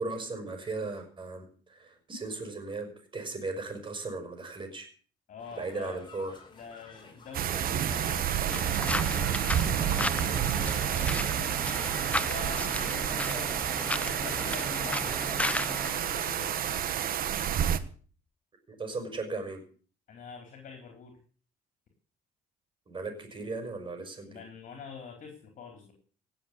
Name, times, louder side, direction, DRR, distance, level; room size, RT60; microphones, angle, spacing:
voice 1, 0.0-4.9 5.6-6.4 18.7-19.6 22.9-24.4, right 3 dB, 30° right, 6 dB, 6.0 m, -37 dB
voice 2, 5.3-6.1 6.5-11.5 12.3-15.2 15.7-16.9 20.1-21.1 24.2-25.9, left 5 dB, 50° left, 3 dB, 4.3 m, -45 dB
sound 1, 5.4-16.7, left 4 dB, 25° left, 4.9 m, -52 dB
sound 2, 7.3-17.8, right 10 dB, 60° right, 1.3 m, -30 dB
sound 3, 8.5-15.9, left 2 dB, 10° left, 0.8 m, -35 dB
17.5 x 7.6 x 8.4 m, 0.43 s
cardioid pair, 110°, 17 cm